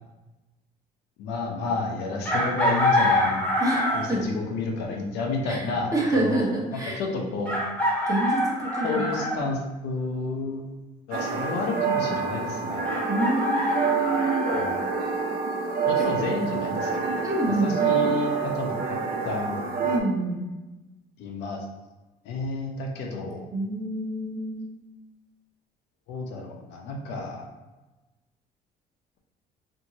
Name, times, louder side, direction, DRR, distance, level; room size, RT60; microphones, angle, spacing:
voice 1, 1.2-3.4 3.9-6.6 7.0-7.6 8.8-10.6 11.1-12.9 14.5-14.7 15.9-18.7 19.2-19.6 21.2-21.6 22.2-23.4 26.1-27.4, left 3 dB, 85° left, 0 dB, 0.6 m, -30 dB
Chicken rooster, 2.3-4.2 5.9-6.0 7.5-9.4 12.9-14.7, left 1 dB, 10° left, 0.8 m, -25 dB
voice 2, 3.6-4.3 5.5-5.6 5.9-7.0 8.0-9.3 13.1-14.5 16.1-16.2 17.2-18.2 19.8-20.4 23.5-24.7, right 2 dB, 20° right, -3 dB, 0.8 m, -27 dB
sound 1, 11.1-20.0, right 6 dB, 60° right, 0.5 m, -27 dB
2.9 x 2.6 x 2.7 m, 1.1 s
cardioid pair, 110°, 17 cm